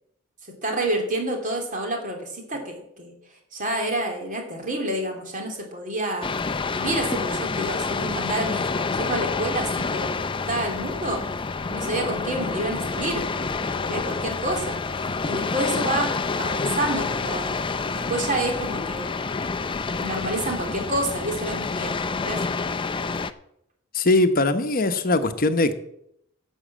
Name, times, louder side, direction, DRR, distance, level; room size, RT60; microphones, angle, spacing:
voice 1, 0.6-3.1 3.5-11.3 11.7-13.3 13.6-17.6 18.0-19.2 20.0-22.4, right 1 dB, 40° right, 2 dB, 3.0 m, -29 dB
sound 1, 6.2-23.3, left 4 dB, 25° left, 0.5 m, -28 dB
voice 2, 23.9-25.7, left 2 dB, 45° left, 9 dB, 1.0 m, -21 dB
12.0 x 7.3 x 7.4 m, 0.75 s
head